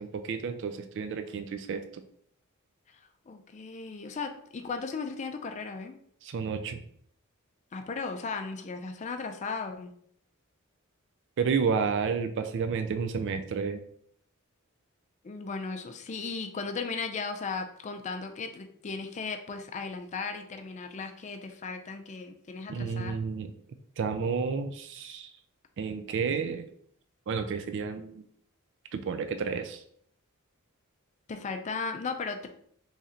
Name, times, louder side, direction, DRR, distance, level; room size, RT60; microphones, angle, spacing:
voice 1, 0.0-1.8 6.2-6.8 11.4-13.8 22.7-23.5 24.0-25.3 25.8-26.6 27.3-28.2 28.9-29.8, right 5 dB, 55° right, 8 dB, 0.3 m, -31 dB
voice 2, 2.9-6.0 7.7-9.9 15.2-23.2 31.3-32.5, left 4 dB, 35° left, 6 dB, 0.4 m, -36 dB
3.1 x 2.8 x 3.7 m, 0.64 s
head